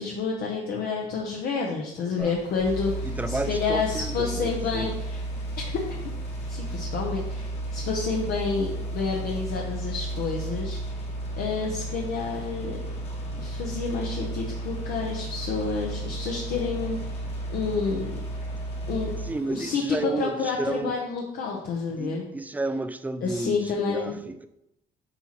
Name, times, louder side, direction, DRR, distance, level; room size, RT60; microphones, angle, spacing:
voice 1, 0.0-5.2 5.6-6.0 6.5-11.1 11.3-12.8 13.4-18.2 18.9-19.1 19.4-22.3 23.2-24.2, left 4 dB, 65° left, -1 dB, 0.9 m, -29 dB
sound 1, 2.2-19.8, left 3 dB, 80° left, 2.5 m, -48 dB
sound 2, 2.6-19.3, right 1 dB, 40° left, 1.3 m, -33 dB
voice 2, 3.0-4.9 19.3-20.9 22.0-24.5, right 2 dB, 10° right, 9 dB, 0.4 m, -32 dB
7.8 x 4.3 x 3.1 m, 0.86 s
cardioid pair, 110°, 17 cm